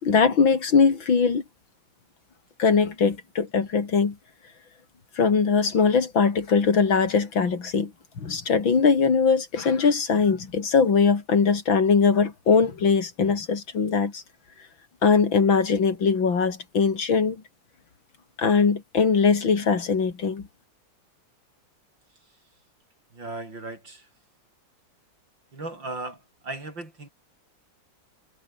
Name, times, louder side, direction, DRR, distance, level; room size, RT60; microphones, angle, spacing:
voice 1, 0.0-1.4 2.6-4.2 5.2-7.9 8.2-14.2 15.0-17.4 18.4-20.5, left 5 dB, 85° left, 3.6 m, -21 dB
voice 2, 23.1-24.0 25.5-26.2 26.4-27.1, right 2 dB, 70° right, 7.6 m, -36 dB
omnidirectional pair, 2.1 m